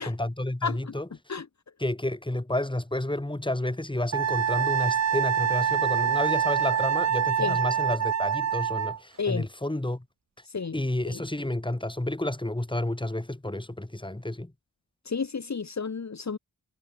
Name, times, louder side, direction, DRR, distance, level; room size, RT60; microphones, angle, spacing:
voice 1, 0.0-1.4 1.8-10.0 10.7-14.5, left 1 dB, 15° left, 7.8 m, -30 dB
voice 2, 0.6-0.9 1.3-1.5 7.4-7.6 9.2-9.5 10.4-10.8 11.1-11.2 15.0-16.4, left 5 dB, 50° left, 2.8 m, -31 dB
Wind instrument woodwind instrument, 4.1-9.0, right 8 dB, 50° right, 0.7 m, -25 dB
wide cardioid pair, 80°, 34 cm